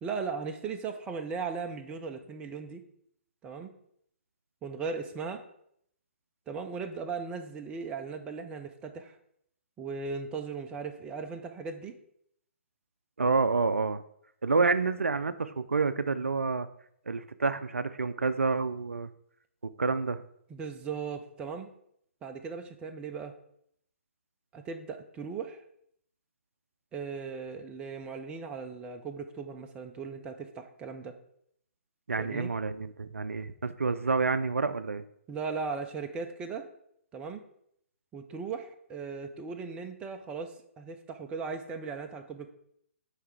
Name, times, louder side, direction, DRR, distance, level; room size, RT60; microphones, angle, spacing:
voice 1, 0.0-2.8 3.4-3.7 4.6-5.4 6.5-9.2 9.8-11.9 20.5-21.7 22.2-23.3 24.5-25.6 26.9-31.1 32.2-32.5 35.3-36.6 37.1-37.4 38.1-42.5, right 5 dB, 15° right, 5 dB, 0.5 m, -37 dB
voice 2, 13.2-14.0 14.4-16.7 17.1-19.1 19.8-20.2 32.1-35.0, right 4 dB, 75° right, 12 dB, 0.4 m, -28 dB
9.3 x 3.3 x 4.6 m, 0.70 s
figure-of-eight pair, 130°, 7 cm